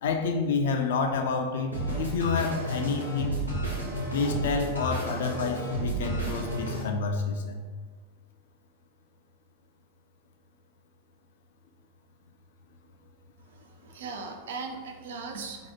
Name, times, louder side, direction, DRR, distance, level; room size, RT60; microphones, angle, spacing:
voice 1, 0.0-3.4 4.1-7.6, left 4 dB, 60° left, 5 dB, 0.4 m, -29 dB
sound 1, 1.7-6.8, right 1 dB, 90° right, 0.9 m, -31 dB
voice 2, 13.5-15.7, right 4 dB, 60° right, 4 dB, 0.4 m, -39 dB
2.9 x 2.3 x 4.2 m, 1.5 s
figure-of-eight pair, 90°, 0 cm